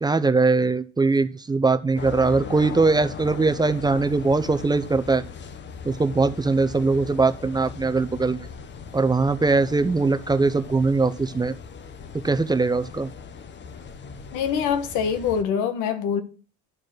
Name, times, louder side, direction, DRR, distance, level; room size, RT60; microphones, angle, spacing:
voice 1, 0.0-5.2 5.9-8.5 8.9-11.5 12.2-13.1, right 3 dB, 15° right, 0.6 m, -21 dB
sound 1, 2.0-15.4, left 6 dB, 35° left, 0.9 m, -39 dB
voice 2, 14.3-16.2, left 7 dB, 80° left, 1.4 m, -24 dB
12.0 x 4.2 x 6.5 m
cardioid pair, 100°, 31 cm